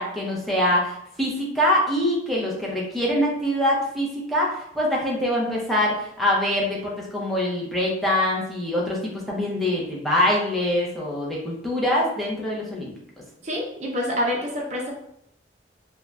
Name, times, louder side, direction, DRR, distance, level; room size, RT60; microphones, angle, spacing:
voice 1, 0.0-12.9, left 1 dB, ahead, -5 dB, 0.7 m, -24 dB
voice 2, 13.4-14.9, equal, 40° right, -1 dB, 0.5 m, -27 dB
2.6 x 2.2 x 3.2 m, 0.75 s
head